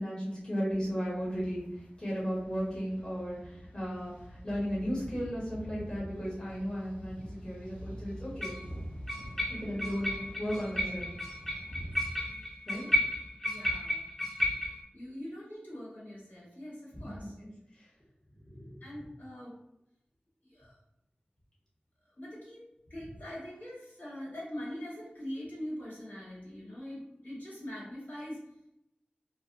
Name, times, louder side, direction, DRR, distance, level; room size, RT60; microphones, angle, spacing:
voice 1, 0.0-4.1 4.4-8.6 9.5-10.1 10.4-11.1 12.6-12.9 17.0-17.1 17.4-17.5 18.5-18.8, equal, 30° left, -7 dB, 0.9 m, -35 dB
sound 1, 1.0-12.1, equal, 50° left, 0.7 m, -46 dB
sound 2, 6.2-6.3 8.4-8.6 9.1-14.8, left 1 dB, 10° left, 0.6 m, -33 dB
voice 2, 13.4-14.1 14.9-17.4 18.8-19.6 20.4-20.8 22.2-22.6 22.9-28.4, equal, 65° left, -7 dB, 1.3 m, -43 dB
2.4 x 2.2 x 2.7 m, 0.85 s
wide cardioid pair, 70°, 3 cm